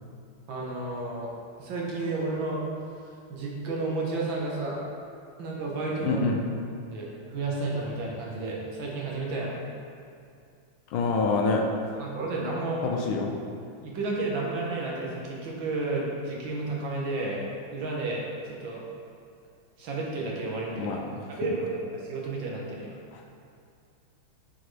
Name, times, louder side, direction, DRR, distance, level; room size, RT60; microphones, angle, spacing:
voice 1, 0.5-1.3 1.6-2.6 3.3-4.8 5.4-6.2 6.8-9.5 11.9-12.8 13.8-17.4 17.7-18.8 19.8-20.9 21.3-23.0, right 2 dB, 65° right, -3 dB, 1.7 m, -32 dB
voice 2, 6.0-6.4 10.9-11.6 12.8-13.4 20.7-21.6 23.1-23.2, left 3 dB, 75° left, 2 dB, 1.4 m, -27 dB
7.8 x 4.4 x 3.2 m, 2.4 s
omnidirectional pair, 2.4 m